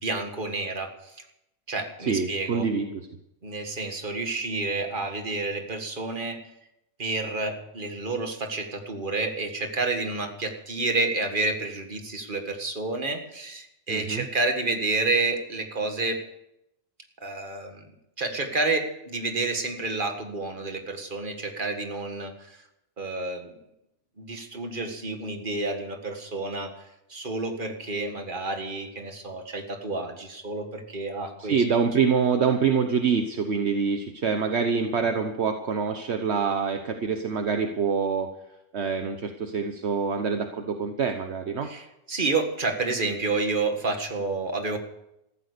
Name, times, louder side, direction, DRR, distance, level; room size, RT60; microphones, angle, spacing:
voice 1, 0.0-1.2 1.7-2.7 3.4-6.4 7.0-16.2 17.2-17.9 18.2-22.6 23.0-23.6 24.2-26.7 27.1-31.6 35.0-35.1 41.6-44.8, right 3 dB, 45° right, 5 dB, 2.0 m, -29 dB
voice 2, 2.0-3.0 13.9-14.3 31.4-38.3 38.7-41.7, right 6 dB, 65° right, 6 dB, 1.3 m, -25 dB
14.5 x 13.0 x 6.8 m, 0.85 s
omnidirectional pair, 1.2 m